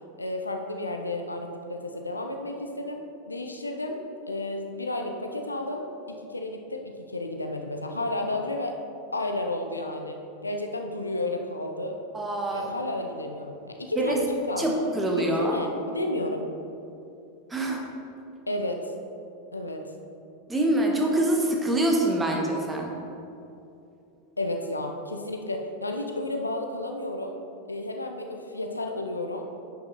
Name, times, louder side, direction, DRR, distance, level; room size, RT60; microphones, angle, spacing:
voice 1, 0.2-4.0 4.3-8.7 9.1-10.2 10.4-12.0 12.5-16.5 18.5-18.9 19.5-19.9 24.4-27.3 27.7-29.5, left 2 dB, 80° left, 3 dB, 0.6 m, -32 dB
voice 2, 12.1-12.7 14.0-14.2 14.6-15.6 17.5-17.9 20.5-23.0, right 1 dB, 15° right, 0 dB, 1.3 m, -25 dB
9.9 x 5.8 x 4.0 m, 2.7 s
figure-of-eight pair, 85°, 0 cm